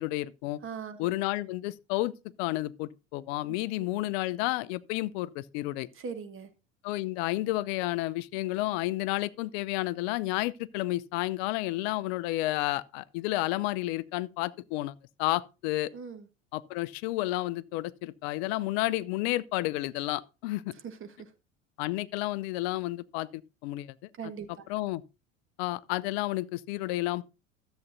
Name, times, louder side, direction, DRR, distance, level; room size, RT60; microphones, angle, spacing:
voice 1, 0.0-0.6 1.0-5.9 6.8-15.9 16.5-20.7 21.8-23.9 24.2-24.3 24.7-25.0 25.6-27.2, left 18 dB, 55° left, 0.6 m, -31 dB
voice 2, 0.6-1.1 5.9-6.5 15.9-16.3 20.8-21.3 24.2-24.6, right 6 dB, 35° right, 1.5 m, -40 dB
13.5 x 8.0 x 2.6 m
hypercardioid pair, 75°, 38 cm